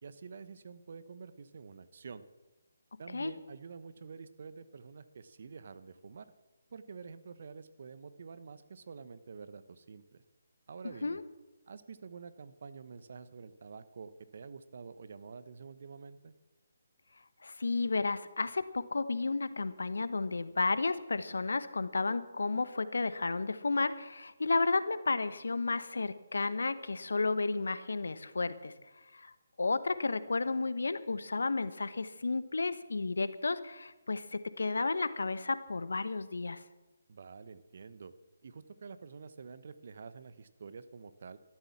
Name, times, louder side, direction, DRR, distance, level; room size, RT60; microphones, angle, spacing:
voice 1, 0.0-2.2 3.0-6.3 6.7-10.2 10.7-11.2 11.7-16.3 37.1-38.1 38.4-41.4, right 5 dB, 55° right, 13 dB, 1.1 m, -48 dB
voice 2, 17.4-28.7 29.1-29.3 29.6-36.6, left 3 dB, 75° left, 13 dB, 1.1 m, -32 dB
13.0 x 12.5 x 7.3 m, 1.1 s
figure-of-eight pair, 150°, 0 cm